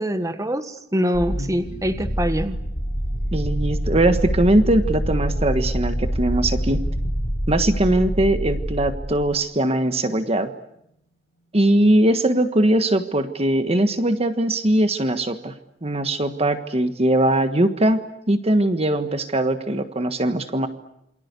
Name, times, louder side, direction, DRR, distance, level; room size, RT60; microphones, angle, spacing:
voice 1, 0.0-2.6, equal, 20° right, 9 dB, 1.6 m, -24 dB
sound 1, 1.1-9.3, equal, 45° left, 4.1 m, -26 dB
voice 2, 3.3-6.9 7.5-10.5 11.5-15.5 15.8-20.7, right 1 dB, 35° right, 9 dB, 1.5 m, -20 dB
28.5 x 25.0 x 8.3 m, 0.77 s
head